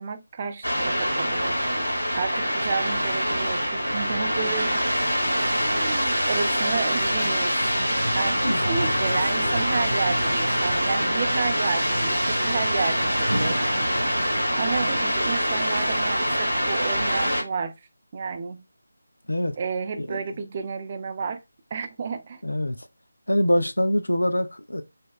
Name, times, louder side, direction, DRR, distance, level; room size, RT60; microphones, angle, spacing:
voice 1, 0.0-1.6 2.1-4.9 5.6-7.6 8.1-13.6 14.5-17.7 18.1-18.6 19.6-21.4 21.7-22.4, right 5 dB, 30° right, 0.3 m, -31 dB
sound 1, 0.6-17.4, equal, 85° right, 1.1 m, -24 dB
Human voice, 6.5-7.5 9.1-9.7, left 2 dB, 35° left, 0.8 m, -40 dB
sound 2, 7.6-15.0, right 1 dB, 70° right, 0.7 m, -33 dB
voice 2, 8.4-9.1 19.3-19.6 20.0-20.2 22.4-22.9 23.3-24.8, equal, 75° left, 0.4 m, -25 dB
2.8 x 2.1 x 2.3 m
figure-of-eight pair, 160°, 0 cm